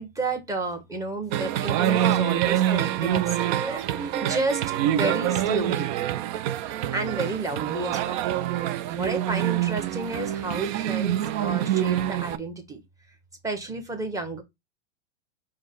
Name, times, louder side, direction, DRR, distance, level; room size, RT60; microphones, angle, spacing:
voice 1, 0.0-5.9 6.9-8.2 8.9-12.8 13.4-14.4, right 2 dB, 10° right, 1.1 m, -31 dB
sound 1, 1.3-12.4, right 12 dB, 45° right, 0.4 m, -26 dB
5.0 x 2.2 x 3.8 m
hypercardioid pair, 115°, 32 cm